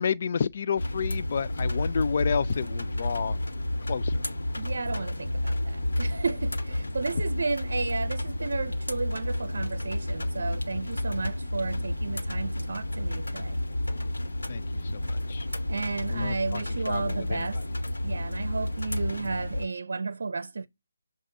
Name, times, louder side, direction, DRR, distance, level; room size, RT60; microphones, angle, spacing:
voice 1, 0.0-3.4 3.9-4.2 14.5-15.5 16.1-17.6, left 6 dB, 40° left, 0.3 m, -30 dB
sound 1, 0.8-19.7, left 1 dB, 85° left, 1.2 m, -31 dB
voice 2, 4.6-13.6 15.7-17.6 18.0-20.7, right 4 dB, 60° right, 0.6 m, -33 dB
7.3 x 2.5 x 5.2 m
figure-of-eight pair, 165°, 0 cm